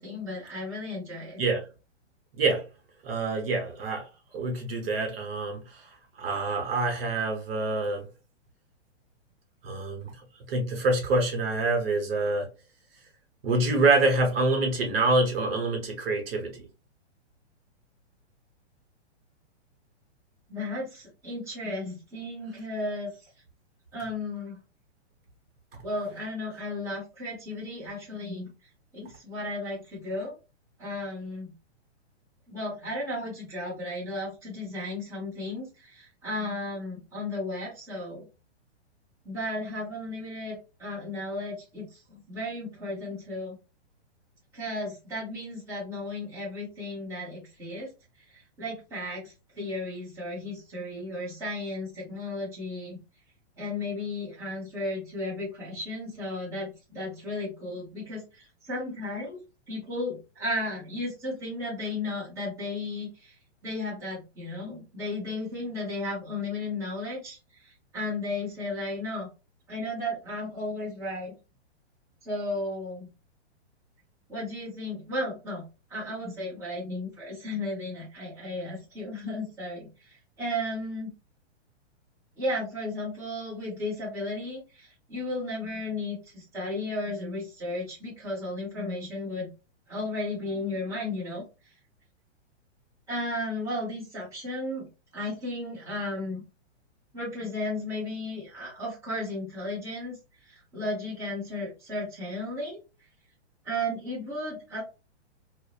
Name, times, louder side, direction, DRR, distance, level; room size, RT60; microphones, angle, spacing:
voice 1, 0.0-1.4 20.5-23.1 23.9-24.6 25.8-28.5 28.9-30.3 30.8-31.5 32.5-38.2 39.2-43.6 44.5-47.9 48.3-53.0 53.6-59.4 59.7-63.3 63.6-67.4 67.6-69.3 69.7-71.3 72.2-73.1 74.3-75.6 75.9-79.9 80.4-81.1 82.4-89.5 89.9-91.4 93.1-94.9 95.1-96.4 97.1-100.1 100.5-102.8 103.6-104.8, left 1 dB, 10° right, 0.8 m, -34 dB
voice 2, 1.4-1.7 2.4-2.7 3.0-8.1 9.6-10.2 10.5-12.5 13.4-16.7, right 2 dB, 55° right, 0.8 m, -26 dB
2.6 x 2.1 x 2.3 m
hypercardioid pair, 160°, 35 cm